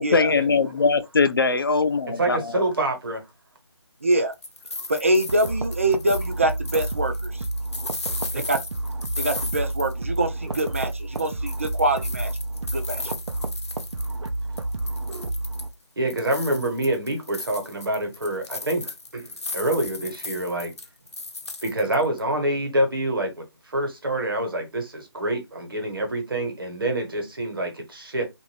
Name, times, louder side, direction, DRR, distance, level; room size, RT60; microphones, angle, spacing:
voice 1, 0.0-2.6, left 4 dB, 55° left, 0.4 m, -21 dB
voice 2, 2.2-3.2 8.1-8.4 16.0-20.7 21.6-28.3, right 1 dB, 55° right, 1.1 m, -26 dB
voice 3, 4.0-4.3 4.9-7.1 8.5-8.6 9.2-12.3 12.7-13.0, right 1 dB, 30° right, 0.4 m, -24 dB
sound 1, 4.1-10.3 10.5-14.3 14.6-15.7 16.1-22.2, left 3 dB, 75° left, 0.8 m, -37 dB
sound 2, 5.3-15.7, right 2 dB, 85° right, 0.6 m, -30 dB
2.5 x 2.3 x 3.2 m
figure-of-eight pair, 165°, 14 cm